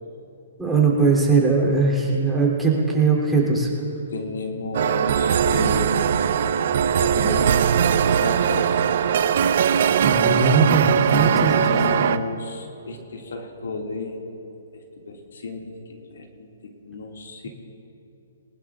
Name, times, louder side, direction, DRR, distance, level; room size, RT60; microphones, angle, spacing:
voice 1, 0.6-3.7 10.0-11.5 17.4-17.5, right 4 dB, 5° right, -4 dB, 3.1 m, -20 dB
voice 2, 4.1-6.3 6.8-8.8 11.3-14.2 14.7-17.5, left 2 dB, 65° left, 1 dB, 2.1 m, -32 dB
sound 1, 4.7-12.2, right 8 dB, 55° right, 0.5 m, -20 dB
21.0 x 19.5 x 2.5 m, 2.9 s
figure-of-eight pair, 130°, 0 cm